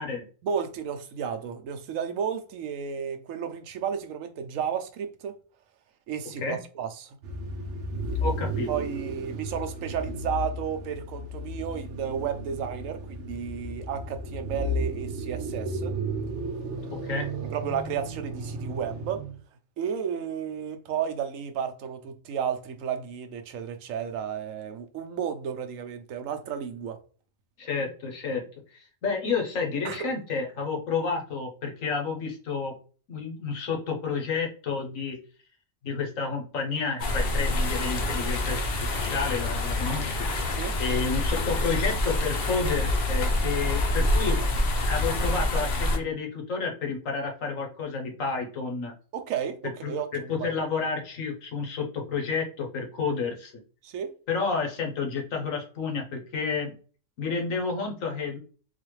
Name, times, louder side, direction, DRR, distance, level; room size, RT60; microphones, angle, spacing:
voice 1, 0.4-5.4 6.1-7.2 8.7-15.9 17.5-19.2 19.8-27.0 29.8-30.1 40.5-40.7 49.1-50.5 53.8-54.1, right 8 dB, 90° right, 1.0 m, -32 dB
sound 1, 7.2-19.4, right 1 dB, 70° right, 0.9 m, -34 dB
voice 2, 8.2-8.7 17.0-17.3 27.6-28.4 28.7-32.7 33.1-35.2 35.8-38.6 38.9-40.3 40.8-44.4 44.9-48.9 49.8-53.5 54.3-56.7 57.2-58.4, left 5 dB, 80° left, 1.4 m, -30 dB
sound 2, 37.0-46.0, left 1 dB, 55° left, 0.8 m, -26 dB
4.1 x 2.4 x 3.1 m
omnidirectional pair, 1.3 m